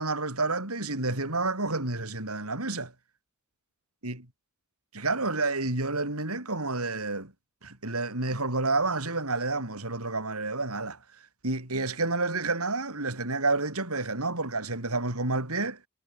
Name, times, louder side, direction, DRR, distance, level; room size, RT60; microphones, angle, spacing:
voice 1, 0.0-2.9 4.0-4.2 4.9-7.3 7.6-11.0 11.4-15.8, right 3 dB, 80° right, 6.0 m, -29 dB
head